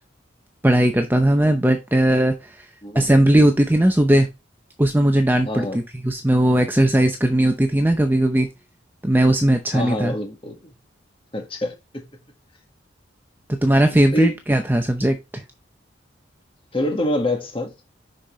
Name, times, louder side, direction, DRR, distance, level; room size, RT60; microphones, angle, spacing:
voice 1, 0.6-2.7 2.9-4.3 4.8-8.5 9.0-10.2 13.5-15.4, right 1 dB, 10° right, 0.6 m, -18 dB
voice 2, 5.5-5.8 9.7-10.6 11.3-11.7 14.1-14.3 16.7-17.7, left 1 dB, 25° left, 1.7 m, -25 dB
6.5 x 5.5 x 3.2 m
head